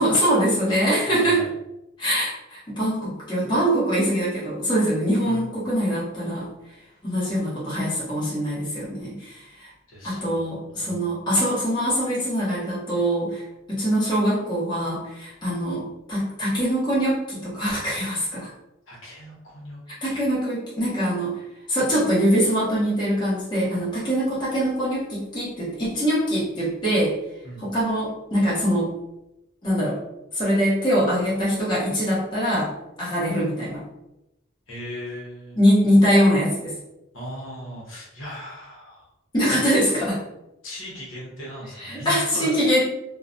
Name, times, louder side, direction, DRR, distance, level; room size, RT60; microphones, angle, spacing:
voice 1, 0.0-1.4 2.0-6.5 7.0-9.7 10.0-13.4 13.7-18.5 20.0-21.4 21.7-27.2 27.6-28.9 29.6-30.0 30.3-32.7 33.0-33.8 35.5-36.7 39.3-40.2 41.8-42.8, equal, 20° left, -9 dB, 0.8 m, -23 dB
voice 2, 1.1-1.5 2.1-2.2 5.2-5.7 9.9-10.5 10.7-11.0 18.9-20.2 27.4-27.6 34.7-35.6 37.1-39.1 39.6-39.7 40.0-40.1 40.6-42.8, equal, 65° left, -5 dB, 0.8 m, -38 dB
2.3 x 2.1 x 2.5 m, 0.92 s
head